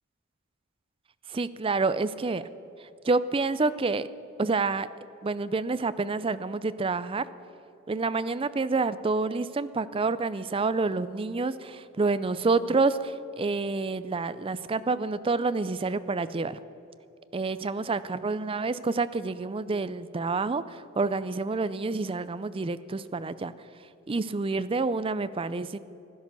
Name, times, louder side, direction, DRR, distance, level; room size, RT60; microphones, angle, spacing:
voice 1, 1.3-2.5 3.0-4.1 4.4-4.9 5.2-7.3 7.9-16.6 17.3-23.5 24.1-25.8, right 3 dB, 25° right, 14 dB, 0.4 m, -28 dB
16.0 x 10.5 x 6.9 m, 2.8 s
head